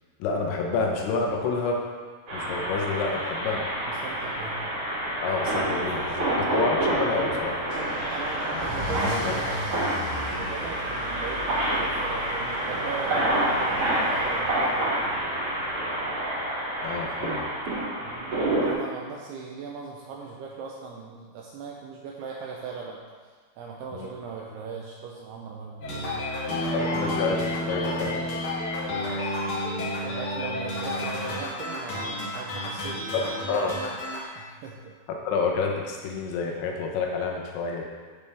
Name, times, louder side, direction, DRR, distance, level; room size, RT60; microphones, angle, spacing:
voice 1, 0.2-1.8 2.3-3.6 5.2-7.6 8.5-8.6 9.2-9.4 16.8-17.5 23.9-24.1 26.7-28.1 29.2-29.3 33.1-33.7 35.2-37.8, left 4 dB, 85° left, 0 dB, 3.2 m, -28 dB
sound 1, 2.3-18.7, right 1 dB, 35° right, 3.2 m, -28 dB
voice 2, 3.9-4.6 5.9-6.0 8.0-9.5 10.1-15.1 18.0-23.0 23.6-26.3 26.8-27.2 27.5-28.6 28.9-29.5 30.0-33.2 34.4-35.0, right 5 dB, 80° right, -1 dB, 2.4 m, -39 dB
Car / Engine starting / Accelerating revving vroom, 7.7-14.9, left 1 dB, 60° right, 2.9 m, -38 dB
sound 2, 25.8-34.2, left 1 dB, 55° left, 1.6 m, -30 dB
14.5 x 5.5 x 3.5 m, 1.5 s
omnidirectional pair, 5.3 m